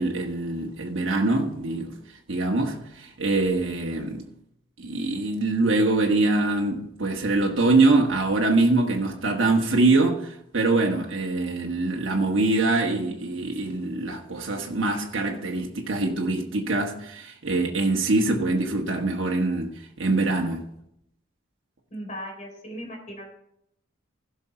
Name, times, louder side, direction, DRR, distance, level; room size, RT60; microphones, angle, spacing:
voice 1, 0.0-1.9 2.3-4.3 4.8-19.7 20.0-20.6, right 2 dB, 70° right, 1.4 m, -24 dB
voice 2, 21.9-23.3, equal, 40° left, 3.9 m, -37 dB
15.5 x 6.4 x 4.3 m
head